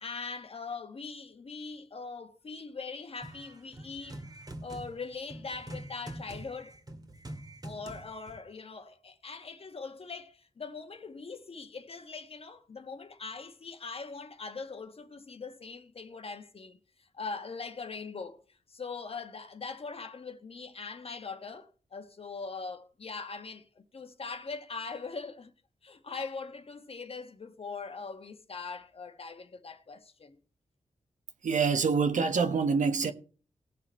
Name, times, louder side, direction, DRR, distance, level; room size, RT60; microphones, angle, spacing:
voice 1, 0.0-4.2 4.6-6.8 7.6-16.8 17.1-18.4 18.7-25.5 25.8-30.4, left 4 dB, 50° left, 1.3 m, -41 dB
sound 1, 3.2-8.4, right 1 dB, 30° right, 2.2 m, -45 dB
voice 2, 31.4-33.1, right 5 dB, 80° right, 1.3 m, -26 dB
18.5 x 6.8 x 4.4 m
wide cardioid pair, 100°, 13 cm